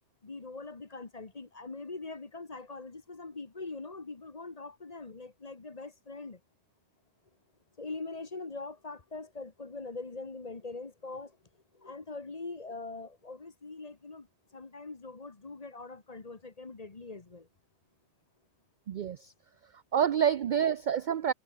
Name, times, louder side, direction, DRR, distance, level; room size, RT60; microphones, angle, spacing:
voice 1, 0.2-6.4 7.8-11.4 11.7-17.5, left 3 dB, 30° left, 1.4 m, -42 dB
voice 2, 18.9-19.3 19.9-21.3, right 8 dB, 60° right, 0.5 m, -27 dB
omnidirectional pair, 1.3 m